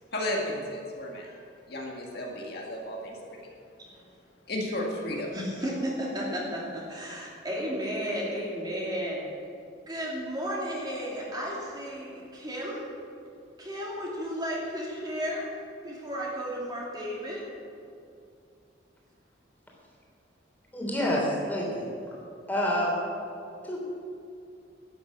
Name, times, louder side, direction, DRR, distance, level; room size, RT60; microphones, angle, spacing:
voice 1, 0.1-3.5 4.5-5.4, left 1 dB, 55° left, -1 dB, 1.9 m, -34 dB
voice 2, 5.3-9.2 9.9-12.9 13.6-15.6 15.8-17.4, equal, 20° right, -4 dB, 2.7 m, -33 dB
voice 3, 20.7-22.2 22.5-23.0 23.6-23.8, equal, 10° left, -3 dB, 3.3 m, -28 dB
12.0 x 9.4 x 7.4 m, 2.5 s
head